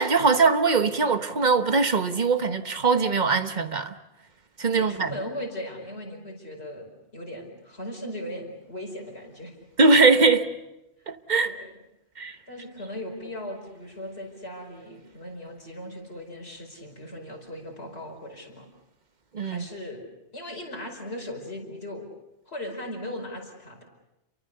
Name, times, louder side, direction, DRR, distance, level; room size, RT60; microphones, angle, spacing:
voice 1, 0.0-3.9 4.6-5.1 9.8-10.5 11.1-11.5 12.2-12.4 19.3-19.6, right 4 dB, 40° right, 1.3 m, -21 dB
voice 2, 4.7-9.5 11.4-11.7 12.5-18.7 19.4-20.0 20.3-22.1 22.5-23.8, left 1 dB, 65° left, 5.5 m, -38 dB
29.5 x 23.5 x 6.8 m
omnidirectional pair, 1.1 m